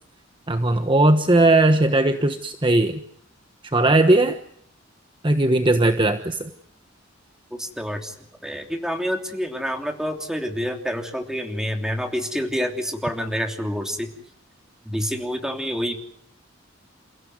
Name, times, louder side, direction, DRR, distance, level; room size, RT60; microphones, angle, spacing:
voice 1, 0.5-3.0 3.7-4.4 5.2-6.5, right 2 dB, 25° right, 7 dB, 1.2 m, -18 dB
voice 2, 7.5-8.1 8.4-14.1 14.8-15.9, equal, 5° right, 3 dB, 3.1 m, -27 dB
29.5 x 16.0 x 9.4 m, 0.66 s
head